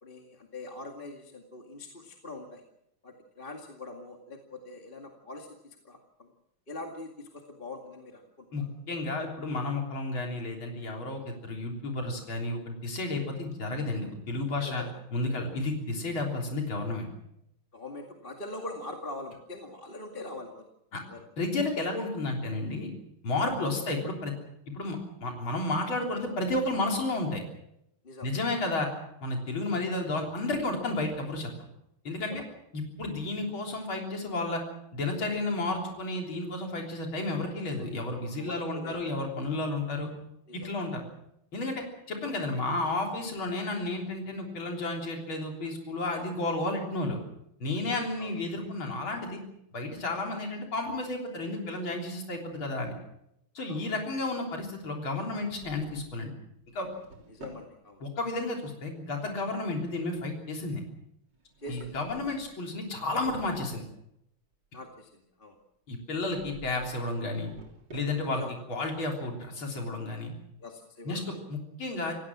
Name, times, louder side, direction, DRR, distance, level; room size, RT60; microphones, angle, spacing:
voice 1, 0.0-2.6 3.0-6.3 6.7-8.7 14.6-14.9 17.7-20.7 21.1-21.2 28.0-28.3 32.3-32.4 38.4-39.1 40.5-40.7 41.0-41.1 48.0-48.3 53.7-54.0 57.3-58.0 61.6-62.2 64.7-65.6 68.3-68.5 70.6-71.2, left 2 dB, 25° left, 2 dB, 2.3 m, -43 dB
voice 2, 8.5-14.8 15.1-17.1 20.9-21.0 21.4-22.9 23.2-24.3 24.7-27.4 28.2-28.9 29.2-31.5 32.0-32.4 32.7-34.6 34.9-40.1 40.5-41.0 41.5-47.2 47.6-49.4 49.7-52.9 53.5-56.3 56.7-56.9 58.0-60.9 61.7-63.8 65.9-67.5 67.9-68.4 68.7-70.3 71.0-72.1, left 2 dB, 80° left, 1 dB, 4.4 m, -32 dB
Drawer open or close, 55.2-56.2 56.7-57.7 61.3-62.5 62.9-64.0 66.2-66.9 67.2-68.5, right 2 dB, 60° right, 4.3 m, -50 dB
28.5 x 17.0 x 6.2 m, 0.79 s
omnidirectional pair, 2.2 m